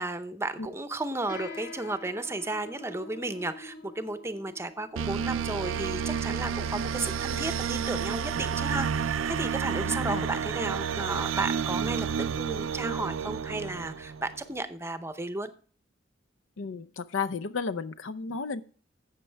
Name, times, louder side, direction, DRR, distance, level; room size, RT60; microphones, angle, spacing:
voice 1, 0.0-12.1 12.4-15.5, right 2 dB, 15° right, 0.7 m, -34 dB
sound 1, 1.3-9.1, left 2 dB, 50° left, 1.5 m, -46 dB
sound 2, 5.0-14.4, right 7 dB, 90° right, 0.4 m, -30 dB
voice 2, 9.9-10.3 16.6-18.6, left 5 dB, 80° left, 0.6 m, -33 dB
12.0 x 8.2 x 3.4 m
head